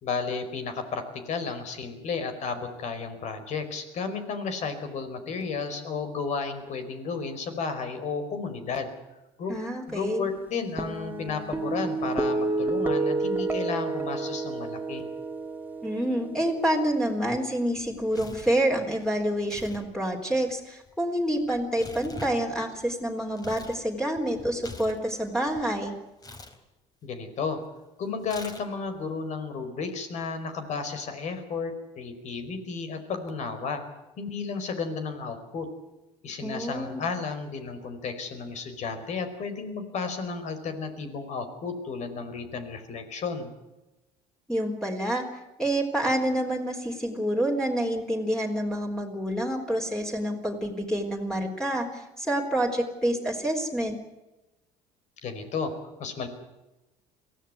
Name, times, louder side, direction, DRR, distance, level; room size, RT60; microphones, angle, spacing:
voice 1, 0.0-8.9 9.4-9.5 9.9-15.1 27.0-27.6 28.0-33.8 34.2-35.7 36.2-43.5 55.2-55.7 56.0-56.3, left 5 dB, 55° left, 8 dB, 4.8 m, -33 dB
voice 2, 9.5-10.3 15.8-25.9 36.4-37.1 44.5-45.3 45.6-54.0, right 1 dB, 5° left, 0 dB, 4.0 m, -28 dB
sound 1, 10.8-17.4, right 3 dB, 15° right, 2.2 m, -30 dB
Tearing, 17.7-18.6 19.4-19.8 20.1-23.8 24.1-25.6 26.2-26.6 28.2-28.9, left 2 dB, 25° left, 3.8 m, -44 dB
23.0 x 16.5 x 9.5 m, 1.0 s
supercardioid pair, 100°, 14 cm